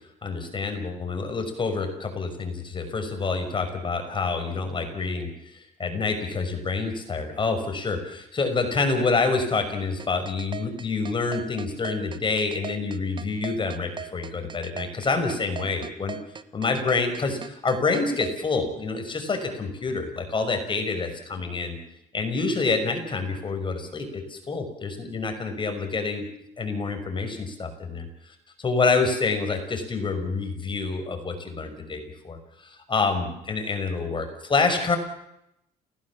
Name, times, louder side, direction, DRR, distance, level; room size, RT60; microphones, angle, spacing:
voice 1, 0.2-16.2 16.5-21.8 22.1-26.3 26.6-32.4 32.6-35.0, left 4 dB, 30° left, 6 dB, 5.6 m, -27 dB
sound 1, 10.0-18.4, right 7 dB, 25° right, 1.3 m, -37 dB
29.0 x 17.5 x 7.4 m, 0.82 s
cardioid pair, 110°, 17 cm